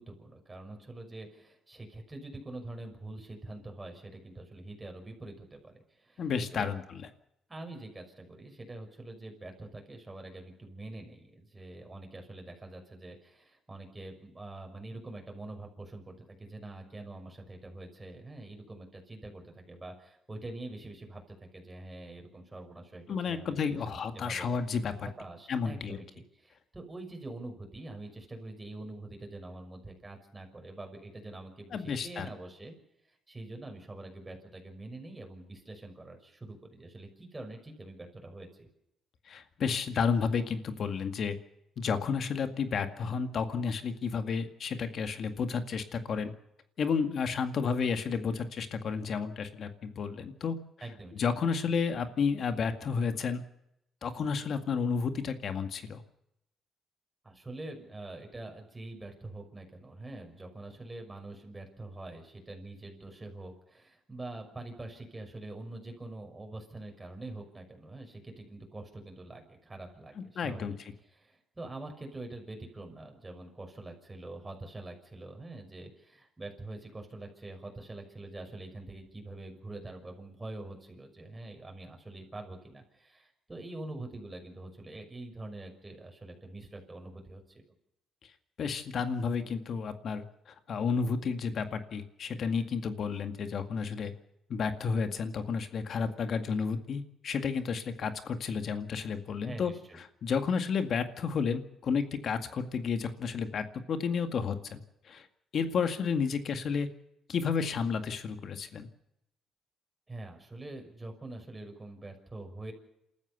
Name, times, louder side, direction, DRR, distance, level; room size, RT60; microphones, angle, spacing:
voice 1, 0.0-6.7 7.5-24.6 25.0-32.7 33.1-38.7 50.8-51.3 57.2-70.8 71.0-87.6 99.4-100.0 110.1-112.7, right 2 dB, 20° right, 3 dB, 6.1 m, -45 dB
voice 2, 6.2-7.0 23.1-25.1 25.5-26.0 31.7-32.3 39.3-41.4 41.8-46.3 46.8-50.6 51.2-53.4 54.0-56.0 70.2-70.7 88.6-90.2 90.7-94.1 94.5-99.7 100.2-104.8 105.1-105.3 105.5-106.9 107.3-108.9, left 5 dB, 60° left, 8 dB, 2.0 m, -31 dB
28.0 x 14.0 x 6.9 m, 0.83 s
cardioid pair, 90°, 0 cm